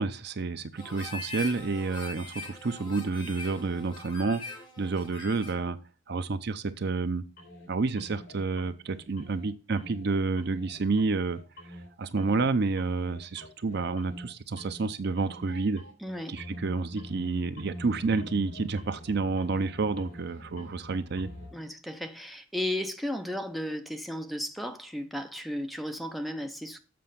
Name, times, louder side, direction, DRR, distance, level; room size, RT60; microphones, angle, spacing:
voice 1, 0.0-5.8 6.1-7.2 7.7-11.4 12.0-15.8 16.3-21.3, right 3 dB, 55° right, 0.6 m, -29 dB
Harmonica, 0.8-5.7, left 3 dB, 25° left, 2.0 m, -42 dB
sound 1, 7.4-7.7 8.0-9.5 9.8-10.1 10.4-11.9 12.2-12.5 12.8-14.3 14.6-14.9 15.2-21.5, left 1 dB, 50° left, 3.9 m, -45 dB
voice 2, 16.0-16.4 21.5-26.8, left 1 dB, ahead, 0.7 m, -34 dB
7.7 x 5.2 x 6.8 m
head